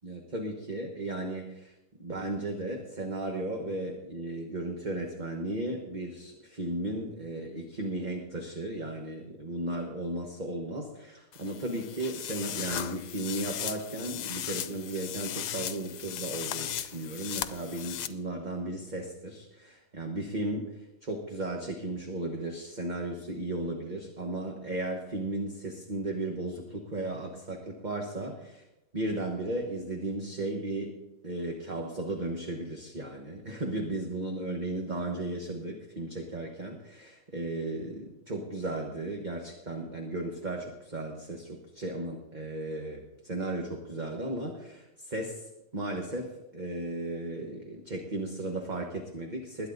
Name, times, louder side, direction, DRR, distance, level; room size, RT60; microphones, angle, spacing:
voice 1, 0.0-1.7 2.0-28.6 28.9-30.9 31.2-49.7, right 2 dB, 30° right, 2 dB, 1.3 m, -35 dB
sound 1, 11.3-18.1, left 11 dB, 80° left, 1.3 m, -37 dB
21.0 x 9.5 x 4.0 m, 0.91 s
omnidirectional pair, 1.8 m